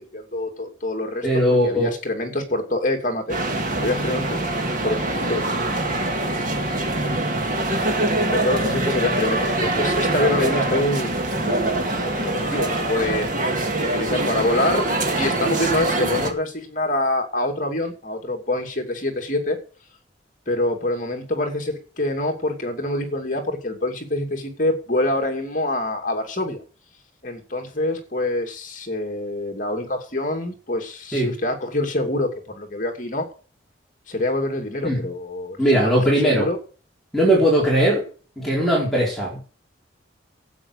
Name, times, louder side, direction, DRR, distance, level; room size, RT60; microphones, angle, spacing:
voice 1, 0.0-4.4 4.8-5.0 5.3-5.7 8.3-11.1 11.4-13.5 13.8-14.9 15.2-19.6 20.5-26.6 27.2-33.3 34.1-36.6, left 1 dB, 40° left, 4 dB, 2.6 m, -26 dB
voice 2, 1.2-1.9 31.1-31.3 34.8-35.0 35.6-36.5 37.1-38.0 38.4-39.4, equal, ahead, -5 dB, 4.4 m, -19 dB
sound 1, 3.3-16.3, right 2 dB, 45° right, 2.0 m, -24 dB
12.0 x 8.6 x 6.5 m, 0.38 s
head